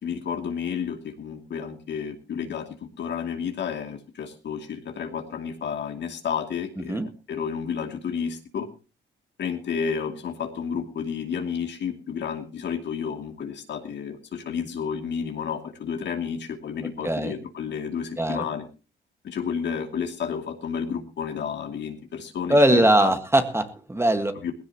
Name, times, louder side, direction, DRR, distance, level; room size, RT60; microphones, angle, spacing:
voice 1, 0.0-8.7 9.4-18.7 19.2-23.1 24.4-24.5, left 7 dB, 60° left, 5 dB, 2.6 m, -31 dB
voice 2, 22.5-24.4, right 1 dB, 15° right, 8 dB, 1.7 m, -21 dB
18.5 x 16.0 x 3.0 m, 0.34 s
cardioid pair, 90°, 20 cm